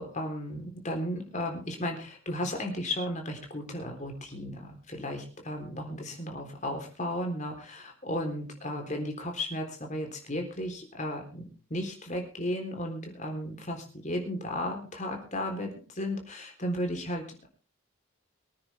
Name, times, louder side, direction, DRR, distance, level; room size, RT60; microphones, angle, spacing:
voice 1, 0.0-17.5, left 1 dB, 35° left, 3 dB, 3.7 m, -34 dB
24.0 x 9.7 x 3.5 m, 0.38 s
head